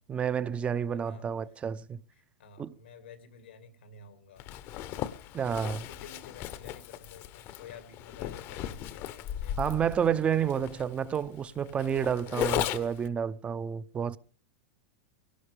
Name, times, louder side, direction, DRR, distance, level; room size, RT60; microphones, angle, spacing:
voice 1, 0.1-2.0 2.6-2.8 5.3-5.9 9.6-14.2, right 8 dB, 20° right, 0.6 m, -30 dB
voice 2, 2.1-4.5 5.9-10.4, left 5 dB, 85° left, 2.3 m, -51 dB
Zipper (clothing), 4.4-13.1, left 12 dB, 40° left, 0.9 m, -36 dB
21.5 x 18.0 x 3.4 m
hypercardioid pair, 125°, 6 cm